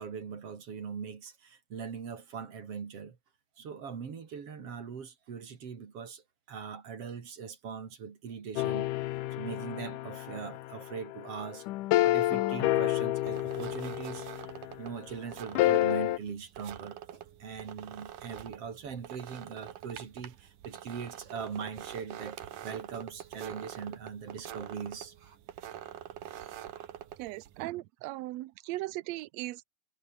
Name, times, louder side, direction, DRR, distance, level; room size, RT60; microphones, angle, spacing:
voice 1, 0.0-3.2 3.6-8.9 9.3-11.7 12.0-14.3 14.8-25.4 26.7-26.9, right 6 dB, 50° right, 3.4 m, -41 dB
sound 1, 8.6-14.8 15.5-16.2, left 16 dB, 90° left, 2.4 m, -29 dB
sound 2, 13.3-27.6, right 11 dB, 90° right, 3.1 m, -46 dB
voice 2, 27.2-29.6, right 18 dB, 70° right, 1.8 m, -38 dB
omnidirectional pair, 3.5 m